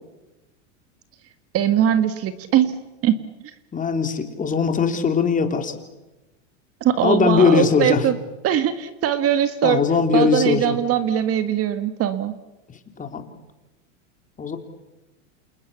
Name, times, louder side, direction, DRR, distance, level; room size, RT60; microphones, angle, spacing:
voice 1, 1.5-2.7 3.0-3.2 6.8-8.2 8.4-9.8 10.1-12.3, right 10 dB, 40° right, 11 dB, 1.8 m, -21 dB
voice 2, 3.7-5.8 7.0-8.1 9.6-10.7 13.0-13.3 14.4-14.6, left 5 dB, 20° left, 6 dB, 3.5 m, -20 dB
29.5 x 28.0 x 7.2 m, 1.1 s
hypercardioid pair, 115°, 37 cm